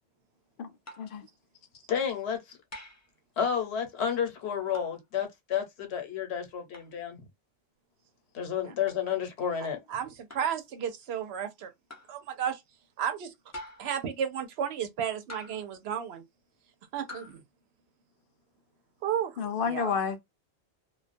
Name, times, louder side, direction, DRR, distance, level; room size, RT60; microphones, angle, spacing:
sound 1, 0.9-1.2 2.7-3.1 4.7-5.0 6.7-6.9 8.9-9.0 10.3-10.6 11.9-12.2 13.5-14.0 15.3-15.7 17.1-17.4, left 1 dB, 30° left, 0.3 m, -45 dB
voice 1, 1.9-2.6 3.4-7.2 8.3-9.8, left 8 dB, 85° left, 1.1 m, -31 dB
voice 2, 9.9-11.7 12.1-12.6 13.0-13.3 13.8-16.2 16.9-17.4 19.0-19.9, right 8 dB, 80° right, 0.9 m, -33 dB
voice 3, 19.4-20.2, left 6 dB, 65° left, 0.7 m, -30 dB
2.3 x 2.2 x 2.5 m
omnidirectional pair, 1.1 m